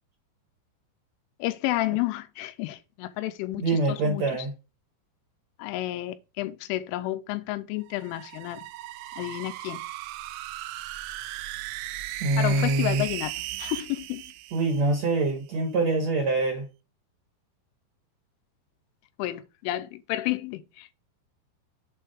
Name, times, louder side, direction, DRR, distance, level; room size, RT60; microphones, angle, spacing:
voice 1, 1.4-4.2 5.6-8.7 9.2-9.8 12.4-13.3 13.6-14.2 19.2-20.9, left 16 dB, 85° left, 3.2 m, -31 dB
voice 2, 3.6-4.5 12.2-13.0 14.5-16.6, right 3 dB, 70° right, 1.7 m, -25 dB
sound 1, 7.8-15.3, right 15 dB, 85° right, 2.9 m, -37 dB
7.5 x 4.5 x 5.0 m
omnidirectional pair, 5.5 m